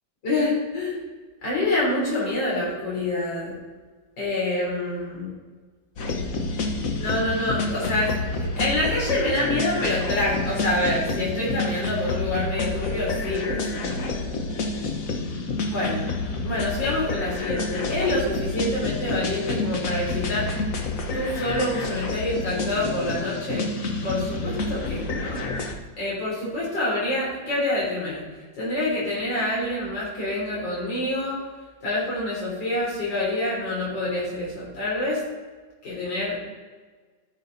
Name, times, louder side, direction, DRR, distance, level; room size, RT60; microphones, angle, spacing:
voice 1, 0.2-1.0 1.4-3.5 4.2-5.3 7.0-8.1 8.6-14.1 15.3-16.1 16.4-20.5 21.1-23.7 24.0-25.6 26.0-28.2 28.6-31.4 31.8-35.2 35.8-36.4, left 1 dB, 65° left, -6 dB, 4.2 m, -27 dB
sound 1, 6.0-25.7, left 3 dB, 50° left, 1.4 m, -29 dB
14.0 x 6.8 x 4.0 m, 1.4 s
omnidirectional pair, 2.1 m